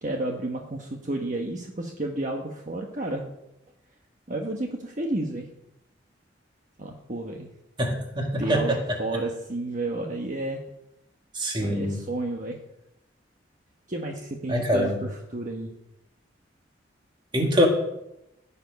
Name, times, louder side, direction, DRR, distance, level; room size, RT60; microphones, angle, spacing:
voice 1, 0.0-3.3 4.3-5.5 6.8-7.5 8.4-10.6 11.6-12.6 13.9-15.7, right 2 dB, 45° right, 2 dB, 1.2 m, -31 dB
voice 2, 7.8-9.0 11.3-12.0 14.5-15.0 17.3-17.7, equal, 25° right, 2 dB, 2.1 m, -24 dB
17.5 x 7.1 x 5.3 m, 0.86 s
head